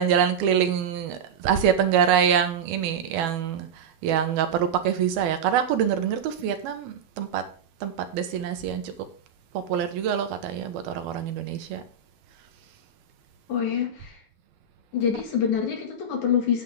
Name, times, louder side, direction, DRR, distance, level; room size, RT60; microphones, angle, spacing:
voice 1, 0.0-7.4 7.8-8.9 9.7-11.8, right 8 dB, 85° right, 2.9 m, -25 dB
voice 2, 13.5-14.2 14.9-16.6, left 8 dB, 55° left, 3.3 m, -25 dB
9.3 x 8.6 x 3.7 m
omnidirectional pair, 4.3 m